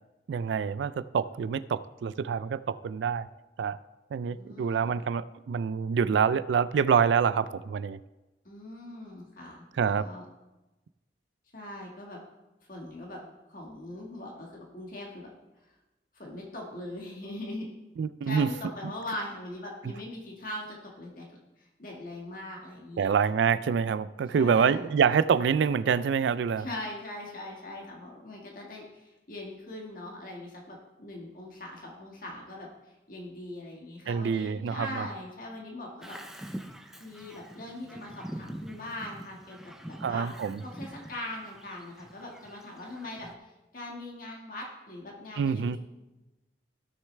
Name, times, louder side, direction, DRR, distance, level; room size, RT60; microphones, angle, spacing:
voice 1, 0.3-3.3 3.6-3.8 4.1-8.0 9.8-10.1 18.0-18.5 23.0-26.7 34.1-35.1 40.0-40.6 45.4-45.8, right 6 dB, 75° right, 15 dB, 0.3 m, -26 dB
voice 2, 4.3-5.0 8.4-9.6 10.0-10.2 11.5-12.2 12.7-13.2 13.5-15.3 15.6-15.7 16.1-17.7 18.2-21.3 21.6-23.1 24.3-24.9 26.6-36.2 37.0-40.3 40.6-43.3 43.7-45.8, left 1 dB, 50° left, -1 dB, 1.6 m, -41 dB
Bird vocalization bird call bird song, 36.0-43.4, equal, 5° right, 0.5 m, -44 dB
16.0 x 6.5 x 3.3 m, 1.1 s
head